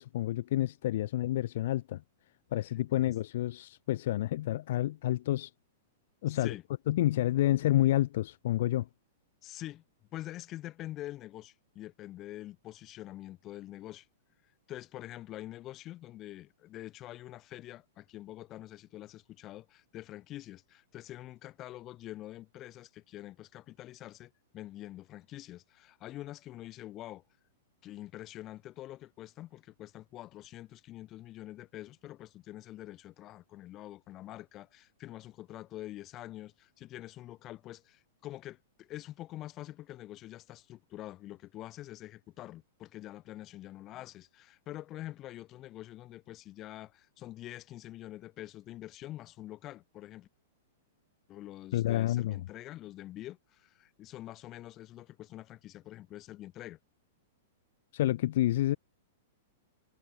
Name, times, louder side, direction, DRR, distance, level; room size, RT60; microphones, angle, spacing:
voice 1, 0.0-2.0 2.5-5.5 6.2-6.5 6.9-8.9 51.7-52.4 57.9-58.8, left 14 dB, 50° left, 1.4 m, -29 dB
voice 2, 6.3-6.6 9.4-9.8 10.1-14.1 14.7-27.2 27.8-50.3 51.3-56.8, left 14 dB, 20° left, 2.7 m, -46 dB
supercardioid pair, 170°, 0 cm